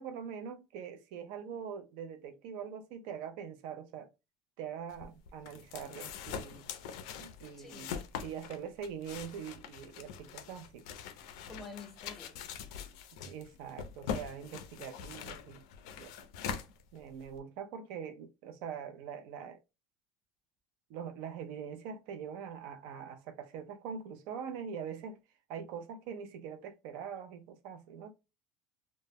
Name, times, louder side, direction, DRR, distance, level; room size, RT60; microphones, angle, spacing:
voice 1, 0.0-4.1 4.6-6.7 7.2-10.8 13.3-15.6 16.0-16.1 16.9-19.6 20.9-25.2 25.5-28.1, right 7 dB, 60° right, 0.3 m, -43 dB
sound 1, 4.9-17.4, left 7 dB, 75° left, 0.3 m, -43 dB
voice 2, 7.6-7.9 11.5-12.4 16.6-16.7, left 3 dB, 10° left, 0.5 m, -48 dB
2.0 x 2.0 x 3.3 m
cardioid pair, 165°, 3 cm